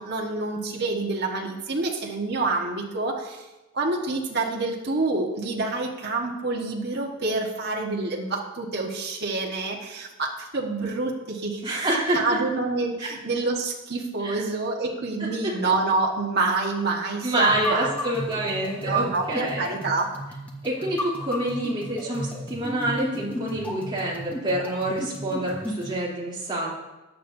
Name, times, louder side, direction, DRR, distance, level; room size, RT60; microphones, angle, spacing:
voice 1, 0.0-3.4 3.7-11.8 12.1-17.9 18.9-20.1, right 3 dB, 50° right, -1 dB, 1.5 m, -27 dB
voice 2, 11.6-12.2 13.0-13.1 14.2-14.4 15.4-15.5 17.2-19.6 20.6-26.7, right 1 dB, 25° right, -6 dB, 3.2 m, -27 dB
sound 1, 17.5-26.0, equal, 5° left, 1.3 m, -34 dB
15.5 x 9.7 x 2.7 m, 1.1 s
head